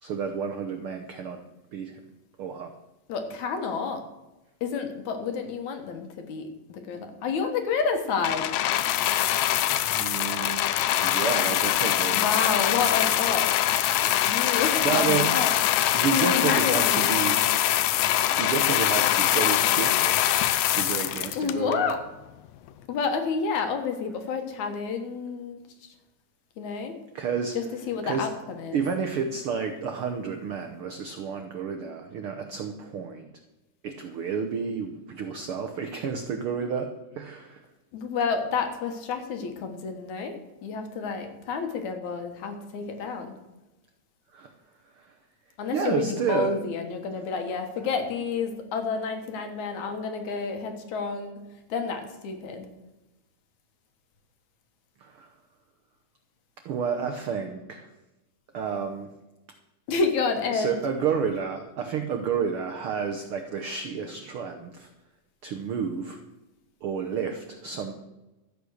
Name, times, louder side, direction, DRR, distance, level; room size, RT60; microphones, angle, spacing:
voice 1, 0.0-1.4 1.7-2.0 2.4-2.7 9.7-10.6 11.0-12.2 14.8-15.3 15.9-17.5 18.3-20.1 20.7-21.9 27.1-27.6 28.0-28.3 28.7-33.3 33.8-37.6 44.3-44.5 45.0-45.1 45.7-46.5 55.0-55.3 56.6-57.9 58.5-59.1 60.5-64.9 65.4-66.2 66.8-67.9, right 6 dB, 85° right, 5 dB, 1.2 m, -30 dB
voice 2, 3.1-4.0 4.6-8.5 12.1-13.5 14.2-15.5 16.1-17.1 21.4-22.0 22.9-25.6 26.6-26.9 27.5-28.8 37.9-40.4 40.6-43.3 45.6-52.7 59.9-60.7, left 5 dB, 65° left, 6 dB, 2.6 m, -29 dB
sound 1, 8.2-21.9 22.7-22.8, left 13 dB, 85° left, 2.3 m, -23 dB
13.0 x 8.2 x 6.4 m, 1.0 s
omnidirectional pair, 3.8 m